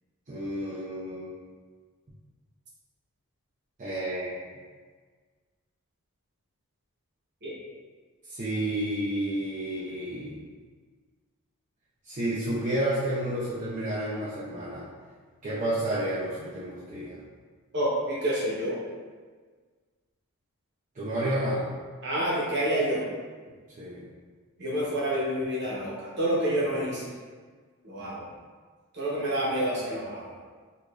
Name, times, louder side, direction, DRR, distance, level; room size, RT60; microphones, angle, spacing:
voice 1, 0.3-1.3 3.8-4.3 8.3-10.4 12.0-14.8 15.4-17.2 20.9-21.7 23.8-24.1, right 1 dB, 35° right, -9 dB, 0.5 m, -30 dB
voice 2, 17.7-18.8 22.0-23.0 24.6-27.1 27.8-28.3 28.9-30.3, right 1 dB, 50° right, -5 dB, 0.9 m, -28 dB
4.7 x 2.5 x 2.4 m, 1.5 s
head